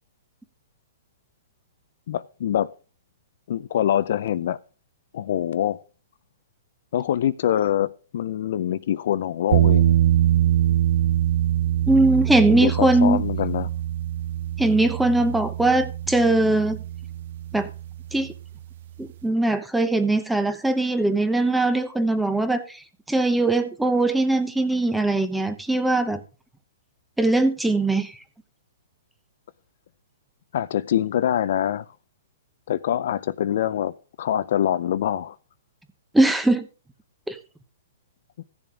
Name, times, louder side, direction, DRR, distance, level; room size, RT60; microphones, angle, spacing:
voice 1, 2.1-2.7 3.5-4.6 5.1-5.8 6.9-10.0 12.5-13.7 30.5-31.8 32.7-35.4, left 10 dB, 60° left, 0.6 m, -24 dB
sound 1, 9.5-18.4, right 12 dB, 55° right, 0.5 m, -24 dB
voice 2, 11.9-13.2 14.6-16.8 17.5-17.7 18.1-18.3 19.0-22.8 23.1-26.2 27.2-28.1 36.1-36.7 37.3-37.4, right 2 dB, 5° right, 0.9 m, -21 dB
15.5 x 7.1 x 3.6 m
hypercardioid pair, 150°, 0 cm